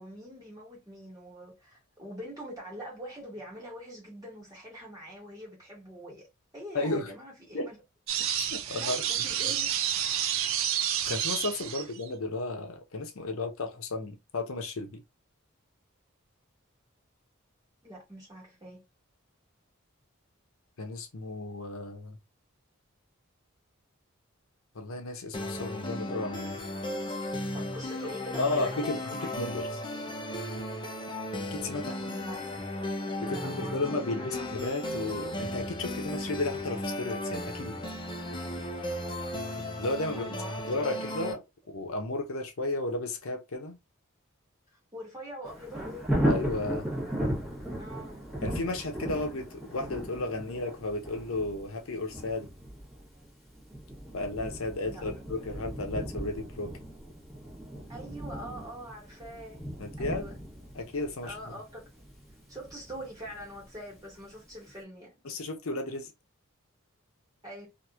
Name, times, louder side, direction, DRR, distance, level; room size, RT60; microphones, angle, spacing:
voice 1, 0.0-6.3 6.5-7.8 8.7-9.8 11.7-11.9 17.8-18.8 27.5-29.3 31.7-32.6 33.2-34.6 40.1-41.0 44.9-46.0 47.8-48.3 54.8-55.1 55.5-55.6 57.9-59.7 60.0-60.4 61.2-61.9 62.5-65.1 67.4-67.7, equal, 15° right, 1.4 m, -44 dB
voice 2, 6.7-7.1 7.5-7.7 8.4-9.0 11.0-15.0 20.8-22.2 24.7-26.6 28.4-29.7 31.5-31.8 33.3-37.8 39.8-40.2 40.6-41.4 41.7-43.8 46.3-46.9 48.4-52.5 54.1-56.7 59.8-60.3 60.7-61.5 65.2-66.1, left 2 dB, 85° left, 0.7 m, -33 dB
sound 1, 8.1-12.1, right 10 dB, 70° right, 0.4 m, -29 dB
sound 2, 25.3-41.3, left 1 dB, 20° left, 0.5 m, -35 dB
Thunder, 45.4-64.2 64.7-64.8, right 1 dB, ahead, 1.0 m, -36 dB
2.9 x 2.5 x 2.3 m
head